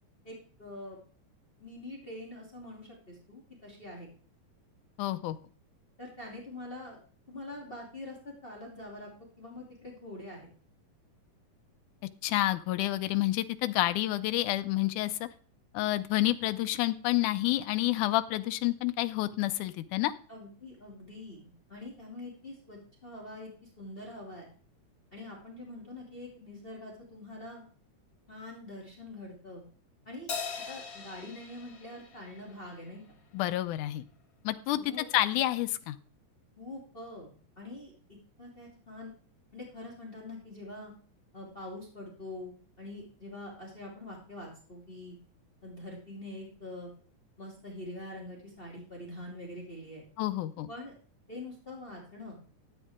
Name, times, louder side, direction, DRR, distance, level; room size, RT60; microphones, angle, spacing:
voice 1, 0.2-1.0 1.6-4.1 6.0-7.0 7.3-9.1 9.4-10.5 20.3-23.5 23.8-24.5 25.1-27.6 28.3-29.6 30.0-30.3 30.7-33.2 34.8-35.1 36.6-37.3 37.6-37.9 38.4-39.1 39.5-40.9 41.3-45.2 45.6-46.9 47.4-50.1 50.7-50.9 51.3-52.4, left 1 dB, 20° left, -2 dB, 2.9 m, -44 dB
voice 2, 5.0-5.4 12.2-15.3 15.7-20.1 33.3-34.1 34.4-36.0 50.2-50.7, left 16 dB, 90° left, 10 dB, 2.2 m, -29 dB
Crash cymbal, 30.3-33.0, left 5 dB, 75° left, 0.8 m, -41 dB
13.0 x 9.0 x 3.6 m, 0.43 s
omnidirectional pair, 3.5 m